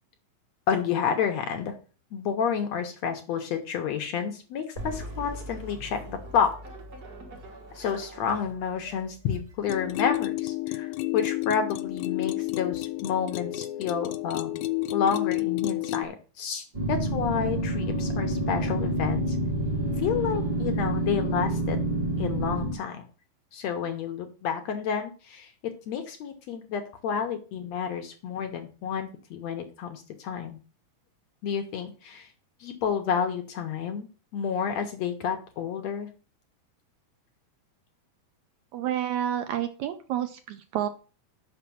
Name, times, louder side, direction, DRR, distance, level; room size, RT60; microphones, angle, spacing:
voice 1, 0.7-1.7 2.1-6.5 7.7-14.5 14.9-19.4 20.0-21.8 22.2-23.1 23.5-25.5 25.9-30.6 31.4-32.3 32.6-34.1 34.3-36.1, left 7 dB, 65° left, 5 dB, 1.8 m, -30 dB
sound 1, 4.7-10.2, right 1 dB, 55° right, 1.1 m, -42 dB
sound 2, 9.7-16.1, left 18 dB, 85° left, 1.6 m, -30 dB
sound 3, 16.7-22.7, right 1 dB, 35° right, 0.6 m, -28 dB
voice 2, 38.7-40.9, right 11 dB, 75° right, 8 dB, 1.8 m, -29 dB
5.9 x 5.8 x 7.0 m, 0.37 s
omnidirectional pair, 3.8 m